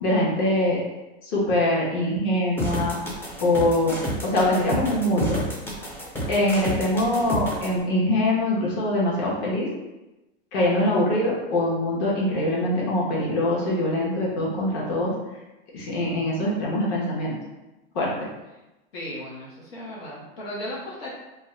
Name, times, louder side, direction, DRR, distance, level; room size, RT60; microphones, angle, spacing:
voice 1, 0.0-0.8 1.2-3.0 3.4-4.0 4.2-5.4 6.3-9.7 10.5-15.1 15.7-17.4 17.9-18.3, left 1 dB, 55° left, -5 dB, 1.2 m, -23 dB
sound 1, 2.6-7.7, equal, 10° left, 0.4 m, -30 dB
voice 2, 18.9-21.1, left 1 dB, 85° left, -6 dB, 1.1 m, -36 dB
2.7 x 2.2 x 3.6 m, 1.0 s
hypercardioid pair, 125°, 30 cm